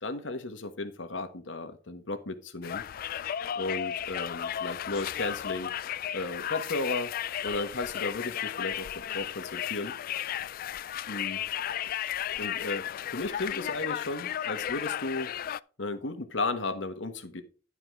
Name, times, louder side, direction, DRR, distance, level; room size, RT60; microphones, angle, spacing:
voice 1, 0.0-2.8 3.2-5.7 6.1-7.1 7.4-9.9 11.1-11.5 11.9-12.1 12.4-15.3 15.8-17.4, left 2 dB, 85° left, 1.4 m, -34 dB
Conversation, 2.6-15.6, left 10 dB, 50° left, 0.3 m, -34 dB
11.5 x 4.9 x 4.8 m
head